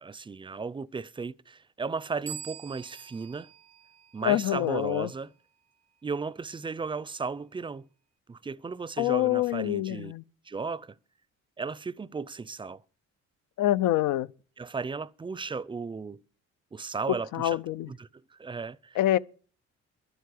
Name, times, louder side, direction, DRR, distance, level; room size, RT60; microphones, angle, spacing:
voice 1, 0.0-3.5 4.1-5.3 6.0-7.9 8.3-10.1 10.5-11.0 11.6-12.8 14.6-16.2 16.7-17.6 17.9-19.0, right 4 dB, 15° right, 0.5 m, -35 dB
sound 1, 2.3-4.7, right 8 dB, 60° right, 0.6 m, -45 dB
voice 2, 4.2-5.1 9.0-10.2 13.6-14.3 17.3-17.9 19.0-19.2, left 14 dB, 85° left, 0.6 m, -26 dB
11.0 x 8.0 x 8.5 m
cardioid pair, 90°, 30 cm